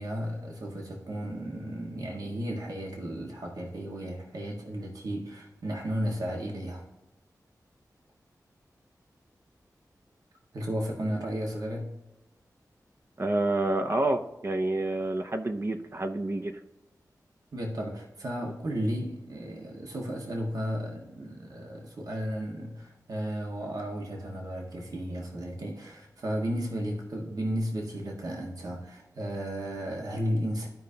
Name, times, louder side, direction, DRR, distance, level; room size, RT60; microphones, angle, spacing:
voice 1, 0.0-6.8 10.5-11.9 17.5-30.7, equal, 65° right, -1 dB, 1.7 m, -34 dB
voice 2, 13.2-16.5, right 2 dB, 40° right, 6 dB, 0.7 m, -28 dB
14.5 x 5.2 x 2.8 m, 1.0 s
wide cardioid pair, 75°, 7 cm